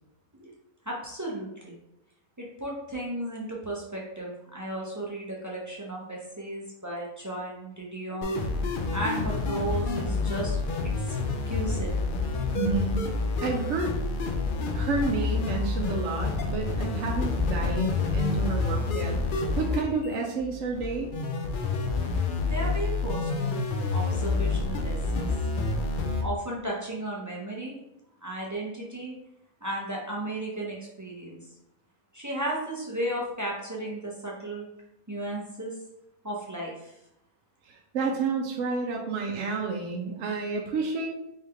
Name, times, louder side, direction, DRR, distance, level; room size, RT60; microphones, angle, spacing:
voice 1, 0.8-1.7 2.4-8.4 8.9-11.1 11.5-11.9 22.4-23.6 23.9-25.3 26.2-27.8 28.2-29.1 29.6-31.4 32.1-34.7 35.1-35.7 36.2-37.0, right 1 dB, 30° right, -4 dB, 0.3 m, -34 dB
sound 1, 8.2-26.2, left 3 dB, 80° left, 0.4 m, -28 dB
voice 2, 12.5-13.1 13.4-13.9 14.7-21.1 37.7-41.1, right 4 dB, 70° right, 0 dB, 0.8 m, -30 dB
3.5 x 3.2 x 3.4 m, 0.83 s
omnidirectional pair, 1.5 m